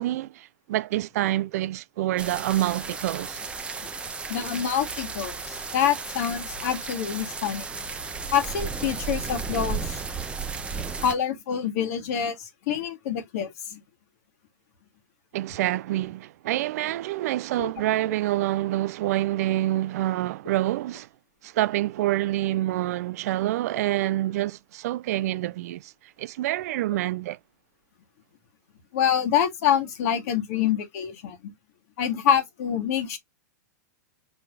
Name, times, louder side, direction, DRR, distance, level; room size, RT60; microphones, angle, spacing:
voice 1, 0.0-3.4 15.3-21.1 21.4-27.4, right 15 dB, 60° right, 0.4 m, -27 dB
sound 1, 2.2-11.1, right 4 dB, 10° right, 0.7 m, -34 dB
voice 2, 4.3-7.7 8.3-10.0 11.0-13.8 17.6-17.7 28.9-31.4 32.0-33.2, left 9 dB, 60° left, 1.4 m, -26 dB
4.7 x 3.8 x 2.4 m
hypercardioid pair, 115°, 9 cm